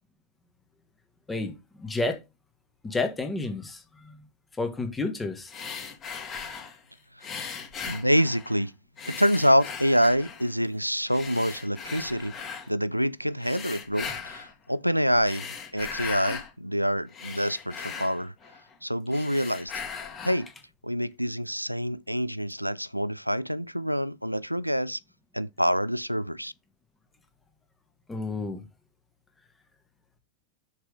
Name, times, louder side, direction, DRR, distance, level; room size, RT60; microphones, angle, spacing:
voice 1, 1.8-2.2 2.8-4.2 4.6-5.5 28.1-28.6, left 3 dB, 10° left, 1.5 m, -30 dB
sound 1, 5.5-6.8 7.2-8.6 9.0-10.5 11.1-12.7 13.4-14.5 15.1-16.5 16.9-18.7 19.1-20.5, left 6 dB, 25° left, 2.1 m, -38 dB
voice 2, 7.9-8.7 9.1-12.3 12.7-15.4 15.7-18.3 18.8-19.7 20.2-20.5 20.8-25.0 25.3-26.5, equal, 90° right, 0.3 m, -26 dB
6.4 x 4.8 x 5.0 m
figure-of-eight pair, 90°, 0 cm